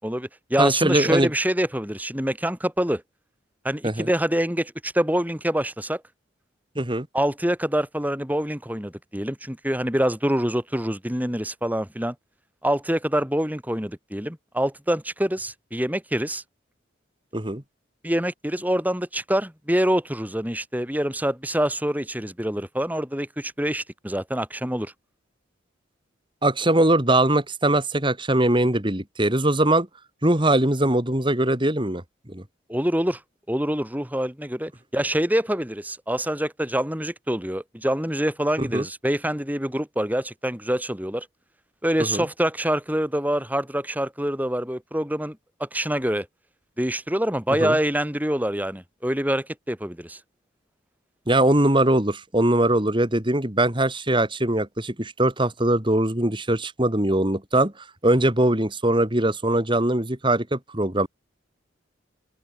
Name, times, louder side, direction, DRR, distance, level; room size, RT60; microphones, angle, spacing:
voice 1, 0.0-3.0 3.6-6.0 7.1-12.2 12.6-16.4 18.0-24.9 32.7-33.2 33.5-41.3 41.8-46.3 46.8-50.2, equal, 10° right, 5.4 m, -25 dB
voice 2, 0.6-1.3 3.8-4.1 6.7-7.1 17.3-17.6 26.4-29.9 30.2-32.0 32.3-32.4 38.6-38.8 42.0-42.3 47.6-47.8 51.3-57.7 58.0-61.1, right 1 dB, 25° right, 2.9 m, -21 dB
open air
head